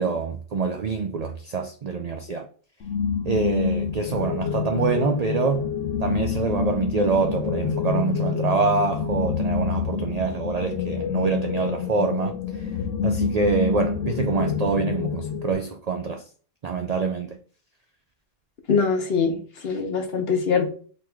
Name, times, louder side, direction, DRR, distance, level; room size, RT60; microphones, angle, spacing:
voice 1, 0.0-2.5 3.2-5.7 6.0-12.4 13.0-16.2 16.6-17.4, right 4 dB, 65° right, 0.4 m, -25 dB
sound 1, 2.8-15.5, left 6 dB, 80° left, 0.9 m, -27 dB
voice 2, 18.7-19.4 19.6-20.7, left 5 dB, 55° left, 1.2 m, -22 dB
3.9 x 3.1 x 3.5 m
omnidirectional pair, 1.3 m